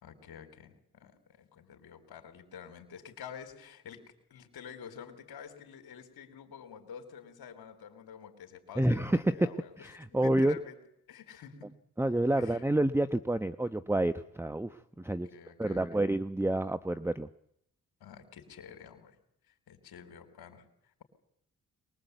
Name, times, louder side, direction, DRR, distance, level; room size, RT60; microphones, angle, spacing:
voice 1, 0.0-10.8 11.1-11.7 12.4-12.6 15.1-16.0 18.0-19.1 19.5-20.6, left 7 dB, 75° left, 6 dB, 3.9 m, -49 dB
voice 2, 8.8-10.6 12.0-15.3 15.6-17.3, right 1 dB, 5° right, 10 dB, 1.0 m, -29 dB
23.0 x 21.0 x 8.2 m, 0.73 s
supercardioid pair, 50°, 37 cm